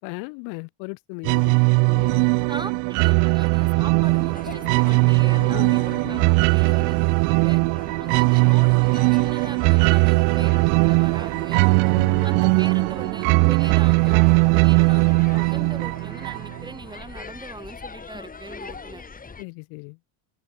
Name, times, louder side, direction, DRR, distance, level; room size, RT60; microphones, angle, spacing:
voice 1, 0.0-1.5 1.8-2.5 4.9-6.3 8.2-8.6 12.0-12.3 19.4-20.0, left 35 dB, 65° left, 1.2 m, -37 dB
sound 1, 1.2-16.7, right 40 dB or more, 60° right, 0.5 m, -19 dB
voice 2, 2.5-7.6 8.0-11.7 12.2-19.0, right 2 dB, 10° right, 7.3 m, -40 dB
sound 2, 4.0-19.4, left 5 dB, 15° left, 6.6 m, -43 dB
open air
cardioid pair, 145°, 49 cm